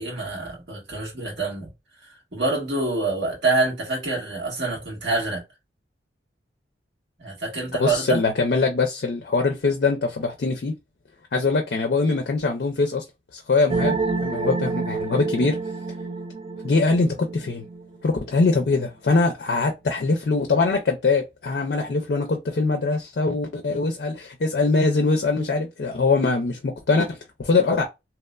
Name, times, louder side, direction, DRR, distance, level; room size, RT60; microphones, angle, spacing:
voice 1, 0.0-1.7 2.3-5.4 7.2-8.2, right 3 dB, 80° right, 1.5 m, -26 dB
voice 2, 7.8-10.7 11.3-13.0 13.3-15.6 16.6-17.6 18.0-27.8, left 3 dB, 60° left, 0.4 m, -22 dB
sound 1, 13.7-18.1, right 3 dB, 35° right, 0.4 m, -28 dB
2.9 x 2.1 x 2.3 m
head